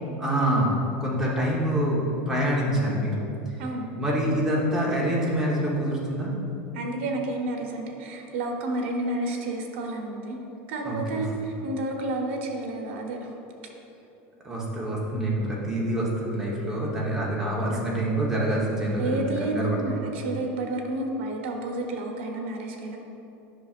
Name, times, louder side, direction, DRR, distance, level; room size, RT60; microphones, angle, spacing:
voice 1, 0.2-3.2 4.0-6.3 10.8-11.2 14.4-19.8, right 1 dB, 10° right, -5 dB, 1.1 m, -26 dB
voice 2, 3.6-3.9 6.7-10.4 10.7-13.3 19.0-23.0, right 2 dB, 75° right, 1 dB, 1.1 m, -30 dB
10.0 x 5.8 x 2.5 m, 2.9 s
supercardioid pair, 170°, 7 cm